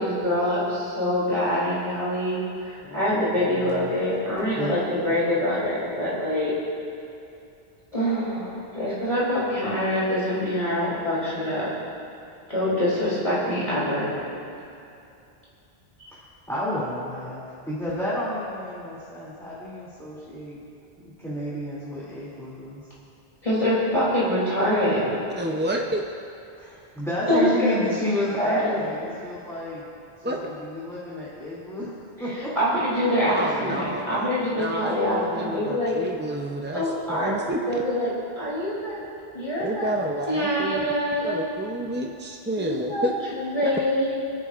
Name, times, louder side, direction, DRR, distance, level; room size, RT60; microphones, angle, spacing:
voice 1, 0.0-6.5 7.9-11.7 12.5-14.2 23.4-25.2 27.3-28.0 28.4-28.9 32.5-35.9 36.7-37.3 37.7-39.0 39.3-39.9 40.3-41.4 42.6-44.1, equal, 35° left, -9 dB, 3.1 m, -25 dB
voice 2, 3.4-4.0 4.6-5.1 16.1-16.2 16.5-20.6 21.0-22.8 26.6-29.9 30.2-31.9 32.2-32.5, left 1 dB, 5° left, -10 dB, 2.6 m, -31 dB
voice 3, 25.4-26.0 30.2-30.4 33.3-37.6 39.6-40.9 41.2-43.1 43.6-43.7, right 1 dB, 15° right, 1 dB, 0.4 m, -30 dB
26.0 x 10.5 x 2.5 m, 2.6 s
omnidirectional pair, 1.0 m